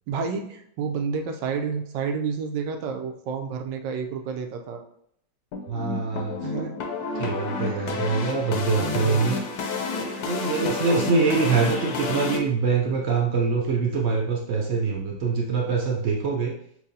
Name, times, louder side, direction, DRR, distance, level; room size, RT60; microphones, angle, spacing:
voice 1, 0.1-4.8 6.4-6.8 7.6-8.2 8.8-9.2 10.0-10.3, right 5 dB, 90° right, 4 dB, 1.2 m, -30 dB
sound 1, 5.5-12.4, left 4 dB, 70° left, 1.1 m, -30 dB
voice 2, 5.7-6.5 7.1-9.4 9.9-16.5, right 4 dB, 65° right, -1 dB, 0.6 m, -24 dB
5.7 x 2.7 x 2.7 m, 0.68 s
omnidirectional pair, 1.8 m